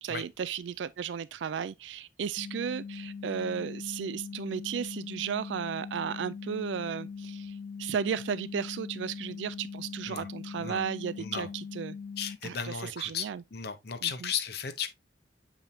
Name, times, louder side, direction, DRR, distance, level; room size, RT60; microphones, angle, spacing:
voice 1, 0.0-12.0 12.4-13.4 14.0-14.3, right 7 dB, 80° right, 0.4 m, -34 dB
sound 1, 2.4-12.4, left 5 dB, 35° left, 0.3 m, -41 dB
voice 2, 12.2-13.2 13.5-14.9, left 7 dB, 65° left, 1.0 m, -35 dB
7.5 x 5.0 x 2.7 m
head